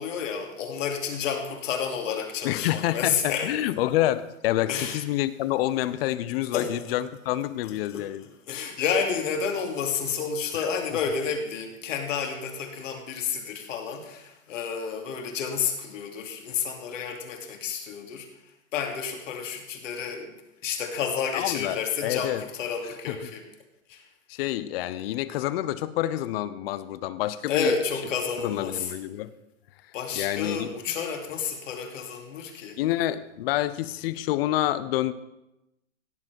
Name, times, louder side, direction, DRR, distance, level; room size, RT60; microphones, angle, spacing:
voice 1, 0.0-3.5 4.7-5.0 6.5-6.8 7.9-8.1 8.5-18.3 18.7-20.3 20.6-23.5 23.9-24.0 27.5-28.9 29.9-32.8, left 6 dB, 65° left, 3 dB, 2.6 m, -30 dB
voice 2, 2.4-8.3 21.3-22.4 23.1-23.2 24.3-27.8 28.4-29.3 30.2-30.7 32.8-35.1, left 14 dB, 45° left, 15 dB, 0.8 m, -28 dB
16.5 x 7.7 x 4.6 m, 0.94 s
hypercardioid pair, 125°, 41 cm